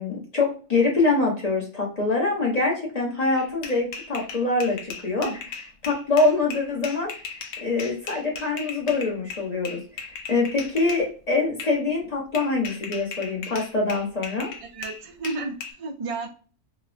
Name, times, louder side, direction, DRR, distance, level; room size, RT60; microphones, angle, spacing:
voice 1, 0.0-5.3 5.8-9.8 10.3-14.5, left 3 dB, 35° left, -1 dB, 0.9 m, -24 dB
sound 1, 3.4-11.1 11.6-11.8 12.3-15.7, left 5 dB, 80° left, 1.0 m, -37 dB
voice 2, 14.6-16.3, right 3 dB, 55° right, 4 dB, 0.3 m, -32 dB
3.1 x 2.1 x 2.4 m, 0.38 s
omnidirectional pair, 1.3 m